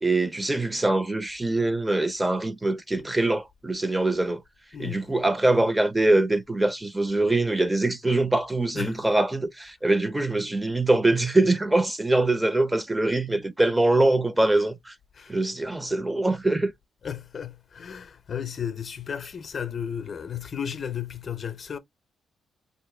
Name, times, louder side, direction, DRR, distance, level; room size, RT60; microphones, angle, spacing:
voice 1, 0.0-4.4 4.8-14.9 15.3-16.7, right 2 dB, 15° right, 0.6 m, -23 dB
voice 2, 4.7-5.1 8.7-9.0 15.1-15.3 17.0-21.8, left 8 dB, 55° left, 0.6 m, -34 dB
3.0 x 2.9 x 3.1 m
supercardioid pair, 65°, 0 cm